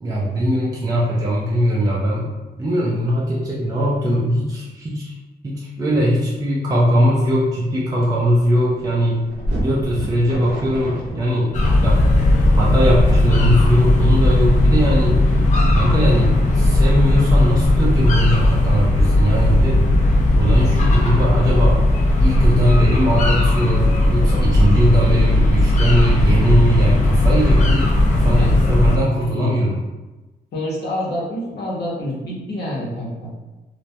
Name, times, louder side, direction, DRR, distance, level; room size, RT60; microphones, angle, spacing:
voice 1, 0.0-5.1 5.4-9.2 9.6-11.5 11.8-12.0 12.4-15.2 15.7-19.9 20.3-21.8 22.2-29.8, equal, 20° right, -5 dB, 0.3 m, -20 dB
sound 1, 7.6-7.7 8.0-14.2, right 1 dB, 85° right, 0.6 m, -31 dB
sound 2, 11.5-29.0, left 1 dB, 45° left, 0.4 m, -16 dB
voice 2, 28.4-28.8 29.3-29.5 30.5-33.3, left 1 dB, 85° left, -5 dB, 0.8 m, -27 dB
2.2 x 2.1 x 2.6 m, 1.1 s
wide cardioid pair, 140°, 17 cm